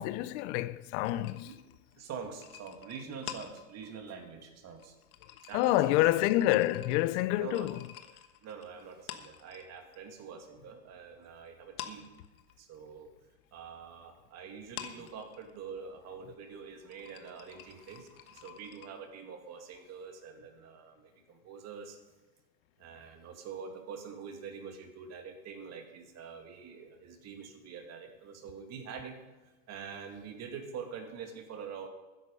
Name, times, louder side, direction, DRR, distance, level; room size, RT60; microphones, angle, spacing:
voice 1, 0.0-1.5 5.5-7.8, left 15 dB, 55° left, 0.7 m, -28 dB
sound 1, 1.0-10.0 10.3-11.3 11.6-18.9, left 11 dB, 80° left, 1.4 m, -49 dB
voice 2, 2.0-4.9 5.5-6.0 6.3-6.4 7.3-7.7 8.1-12.1 12.6-13.1 13.5-22.0 22.8-29.2 29.7-31.9, right 6 dB, 35° right, 2.4 m, -45 dB
13.0 x 10.5 x 5.5 m
supercardioid pair, 130°, 42 cm